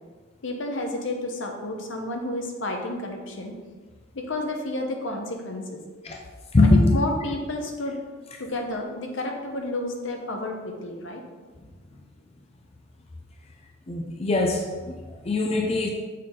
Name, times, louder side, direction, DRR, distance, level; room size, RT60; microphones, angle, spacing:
voice 1, 0.4-3.6 4.1-5.8 6.6-8.0 8.4-11.2, left 1 dB, 70° left, 3 dB, 0.9 m, -31 dB
voice 2, 6.5-6.9 13.9-15.9, left 2 dB, 30° left, 2 dB, 0.5 m, -22 dB
6.5 x 4.1 x 3.7 m, 1.4 s
head